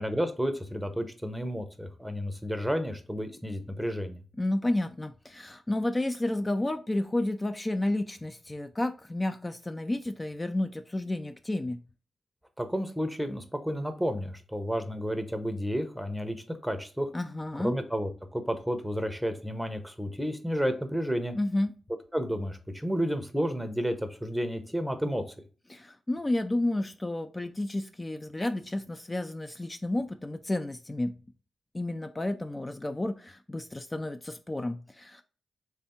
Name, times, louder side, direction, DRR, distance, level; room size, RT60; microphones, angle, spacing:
voice 1, 0.0-4.2 12.6-17.1 17.6-21.4 22.1-25.2, equal, 5° right, 0.7 m, -31 dB
voice 2, 4.4-11.8 17.1-17.7 21.3-21.7 25.7-31.1 31.7-35.2, left 1 dB, 20° left, 0.3 m, -31 dB
3.5 x 3.3 x 4.2 m
cardioid pair, 75°, 0 cm